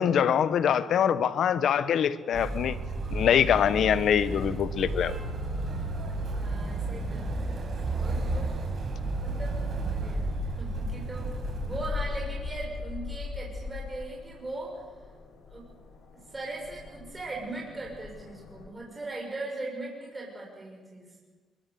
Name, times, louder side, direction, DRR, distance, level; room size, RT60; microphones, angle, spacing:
voice 1, 0.0-2.8 3.1-5.2, left 8 dB, 65° left, 1.1 m, -24 dB
Motor vehicle (road), 2.3-11.9, right 2 dB, 50° right, 5.4 m, -32 dB
sound 1, 4.2-18.7, left 5 dB, 85° left, 6.9 m, -41 dB
voice 2, 6.4-8.5 9.2-9.6 9.9-14.8 15.5-15.6 16.3-21.1, right 2 dB, 20° right, 6.7 m, -39 dB
22.5 x 22.0 x 7.0 m
cardioid pair, 90°, 0 cm